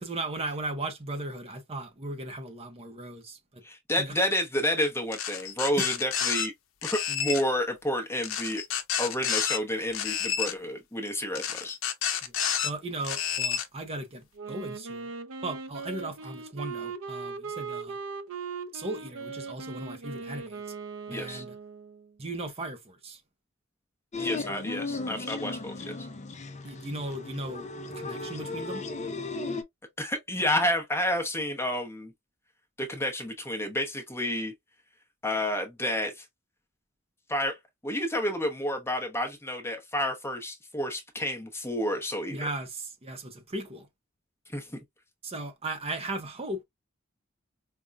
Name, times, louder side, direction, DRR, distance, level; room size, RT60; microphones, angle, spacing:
voice 1, 0.0-3.6 4.0-4.1 5.8-5.9 12.6-15.1 15.4-18.0 18.7-20.6 21.1-21.5 22.2-23.2 26.6-28.8 42.3-43.9 45.2-46.6, right 2 dB, 30° right, 0.6 m, -37 dB
voice 2, 3.6-6.5 6.9-8.6 9.0-11.8 21.1-21.4 24.2-26.1 30.0-32.1 32.8-34.5 35.2-36.3 37.3-37.6 37.8-42.5 44.5-44.8, left 1 dB, 10° left, 0.8 m, -30 dB
sound 1, 5.1-6.5 6.8-7.4 8.2-9.6 9.9-10.5 11.4-12.7 13.0-13.7, left 8 dB, 75° left, 0.6 m, -30 dB
Wind instrument woodwind instrument, 14.4-22.1, right 5 dB, 85° right, 0.5 m, -39 dB
sound 2, 24.1-29.6, left 3 dB, 35° left, 0.5 m, -36 dB
5.1 x 2.2 x 2.3 m
head